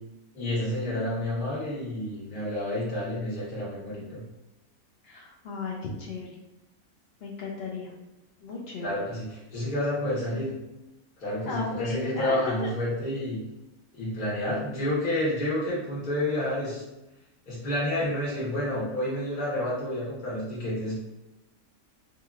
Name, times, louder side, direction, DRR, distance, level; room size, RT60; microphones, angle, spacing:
voice 1, 0.3-4.2 8.8-10.5 11.2-13.4 13.9-16.8 17.5-21.0, left 1 dB, 35° left, -8 dB, 1.2 m, -29 dB
voice 2, 5.0-6.4 7.2-7.9 8.4-8.9 11.5-12.4 12.6-12.7, left 4 dB, 60° left, -2 dB, 0.7 m, -35 dB
2.9 x 2.7 x 2.4 m, 0.96 s
omnidirectional pair, 1.5 m